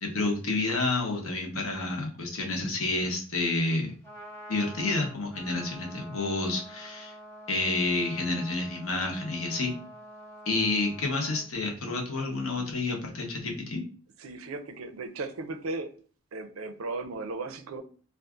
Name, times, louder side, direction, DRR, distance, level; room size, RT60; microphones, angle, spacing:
voice 1, 0.0-3.9 4.5-7.1 7.5-9.8 10.5-13.8, left 2 dB, 85° left, 1.0 m, -29 dB
Trumpet, 3.9-11.5, equal, 10° left, 0.9 m, -47 dB
voice 2, 14.2-16.0 16.3-17.8, right 3 dB, 80° right, 0.5 m, -36 dB
2.6 x 2.4 x 3.5 m
head